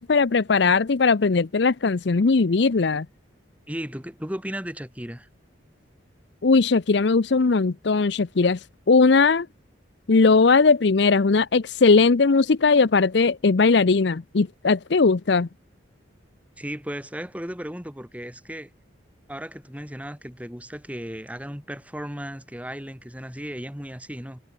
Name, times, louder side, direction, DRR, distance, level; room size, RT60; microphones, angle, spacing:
voice 1, 0.1-3.1 6.4-8.6 8.9-9.5 10.1-15.5, left 4 dB, 60° left, 0.6 m, -19 dB
voice 2, 3.7-5.3 16.6-18.7 19.3-24.4, equal, 5° right, 5.5 m, -35 dB
head